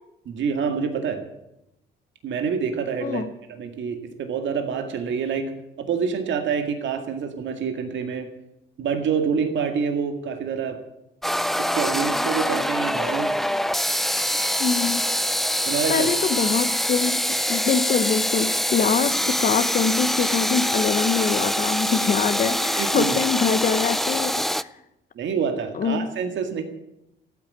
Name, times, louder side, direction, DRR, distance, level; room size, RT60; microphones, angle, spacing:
voice 1, 0.3-1.2 2.2-3.2 3.6-5.5 5.8-8.3 8.8-10.8 11.6-13.3 15.7-16.1 22.8-23.2 25.2-26.6, right 6 dB, 70° right, 6 dB, 2.0 m, -26 dB
voice 2, 3.0-3.3 14.6-15.1 15.9-17.2 17.5-24.7 25.7-26.0, left 6 dB, 45° left, 10 dB, 0.9 m, -24 dB
sound 1, 11.2-24.6, equal, ahead, 0.4 m, -24 dB
14.0 x 8.9 x 9.5 m, 0.85 s
cardioid pair, 90°, 20 cm